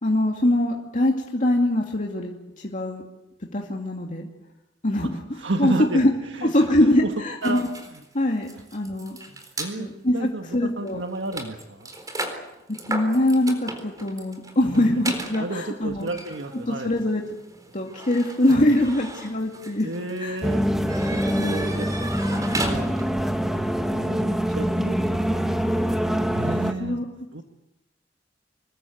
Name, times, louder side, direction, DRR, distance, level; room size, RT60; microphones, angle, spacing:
voice 1, 0.0-3.0 3.5-4.3 4.8-5.2 5.6-6.1 6.4-7.7 8.1-9.2 9.8-11.0 12.9-16.1 16.7-17.2 17.7-19.9 20.2-20.4 21.4-21.6 26.8-27.0, left 1 dB, 45° left, 0 dB, 2.4 m, -23 dB
voice 2, 5.0-8.0 9.3-9.9 10.1-11.9 14.6-15.0 15.4-17.0 18.5-18.8 19.8-20.7 21.1-22.8 23.7-25.6 26.3-27.0 27.3-27.4, right 2 dB, 85° right, 5 dB, 1.6 m, -33 dB
sound 1, 7.4-9.7 10.5-10.6 10.9-23.3, right 2 dB, 20° right, 4.2 m, -36 dB
sound 2, 20.4-26.7, equal, ahead, 1.6 m, -24 dB
26.5 x 21.5 x 8.0 m, 0.93 s
head